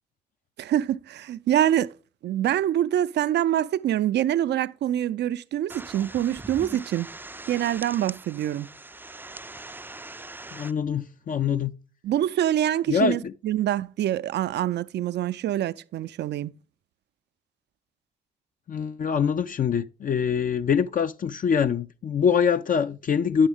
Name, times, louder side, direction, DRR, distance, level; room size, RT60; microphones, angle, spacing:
voice 1, 0.6-1.9 2.2-7.1 7.5-8.7 12.0-16.5, right 11 dB, 60° right, 0.5 m, -25 dB
sound 1, 5.7-10.7, right 2 dB, 10° right, 0.5 m, -41 dB
voice 2, 10.5-11.7 12.9-13.3 18.7-23.5, left 7 dB, 45° left, 0.5 m, -24 dB
9.7 x 7.2 x 3.4 m
hypercardioid pair, 40°, 20 cm